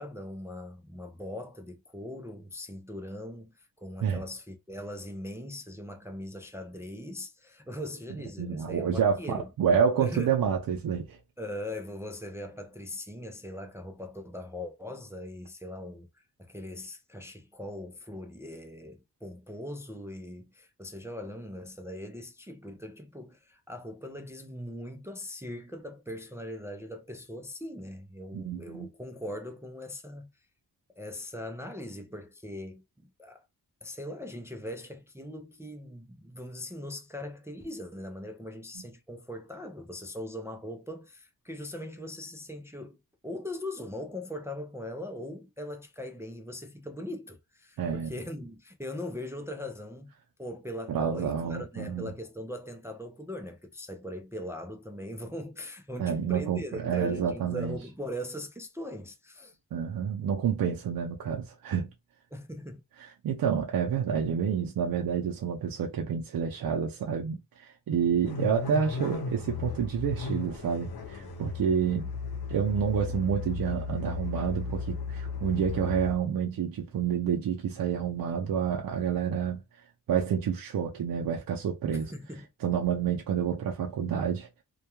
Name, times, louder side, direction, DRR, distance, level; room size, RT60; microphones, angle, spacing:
voice 1, 0.0-9.5 10.0-10.4 11.4-16.1 16.4-30.3 30.9-33.4 33.8-50.1 50.4-59.6 62.3-62.8 81.9-82.5, left 1 dB, 10° right, 0.3 m, -40 dB
voice 2, 8.4-11.2 28.3-28.9 47.8-48.1 50.9-52.1 56.0-57.8 59.7-61.9 63.0-72.1 72.5-79.6 80.1-82.1 82.6-84.5, right 7 dB, 70° right, 0.5 m, -29 dB
sound 1, 68.2-76.1, left 4 dB, 85° left, 0.8 m, -35 dB
2.2 x 2.2 x 2.9 m
cardioid pair, 75°, 36 cm